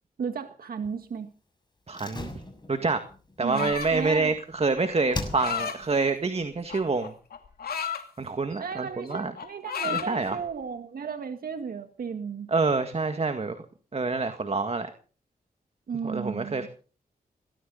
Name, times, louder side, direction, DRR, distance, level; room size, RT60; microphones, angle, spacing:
voice 1, 0.2-1.3 3.4-4.3 8.6-12.5 15.9-16.7, right 6 dB, 70° right, 7 dB, 1.8 m, -34 dB
Slam, 1.9-4.6 5.1-5.9 6.1-6.2, left 2 dB, 30° left, 6.8 m, -38 dB
voice 2, 1.9-2.3 2.7-3.0 3.4-7.1 8.2-9.3 9.9-10.4 12.5-13.6 13.9-14.9 16.0-16.7, right 3 dB, 40° right, 8 dB, 1.9 m, -27 dB
sound 1, 3.5-4.1 5.1-5.8 6.7-8.0 8.5-8.8 9.1-10.1, left 7 dB, 75° left, 2.6 m, -32 dB
20.0 x 17.5 x 4.1 m, 0.41 s
cardioid pair, 55°, 16 cm